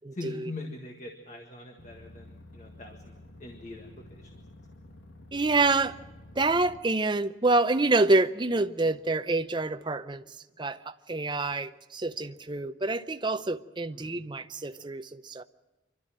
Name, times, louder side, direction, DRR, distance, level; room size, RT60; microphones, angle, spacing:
voice 1, 0.1-4.4 13.9-14.2, left 2 dB, 35° left, 1.7 m, -43 dB
sound 1, 1.8-6.8, left 1 dB, 80° left, 2.0 m, -50 dB
voice 2, 5.3-6.0 6.4-10.2 10.6-15.4, right 2 dB, 25° right, 0.6 m, -27 dB
26.5 x 12.5 x 8.9 m
head